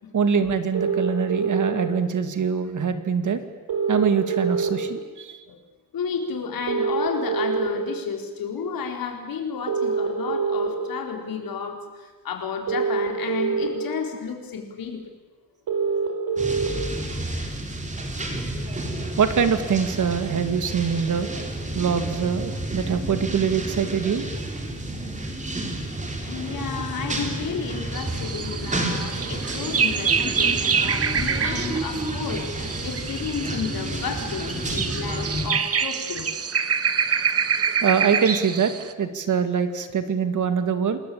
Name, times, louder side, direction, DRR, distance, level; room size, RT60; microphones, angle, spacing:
voice 1, 0.1-3.4 3.9-5.4 19.2-21.3 21.7-24.3 37.8-38.7 39.0-41.0, right 6 dB, 60° right, 9 dB, 2.3 m, -23 dB
sound 1, 0.7-1.7 3.7-4.7 6.7-7.7 9.7-10.7 12.7-13.7 15.7-16.7, right 5 dB, 90° right, 5.7 m, -24 dB
voice 2, 5.9-15.0 26.2-36.3, left 6 dB, 80° left, 3 dB, 4.5 m, -32 dB
sound 2, 16.4-35.5, right 1 dB, 20° right, 3.7 m, -30 dB
sound 3, 27.9-38.9, right 6 dB, 45° right, 1.3 m, -26 dB
28.0 x 21.5 x 8.7 m, 1.3 s
wide cardioid pair, 170°, 34 cm